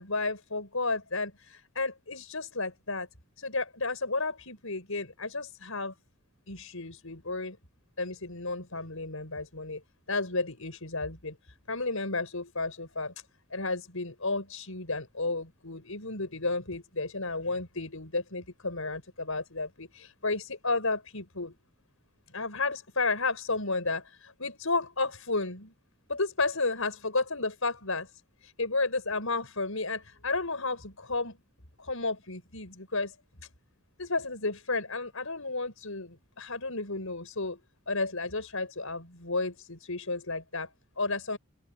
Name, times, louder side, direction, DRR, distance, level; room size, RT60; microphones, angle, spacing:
voice 1, 0.0-3.1 3.4-5.9 6.5-7.6 8.0-9.8 10.1-13.1 13.5-21.5 22.3-25.7 26.1-28.1 28.6-31.4 31.8-33.1 34.0-37.6 37.9-41.4, left 3 dB, 75° left, 6.7 m, -32 dB
open air
head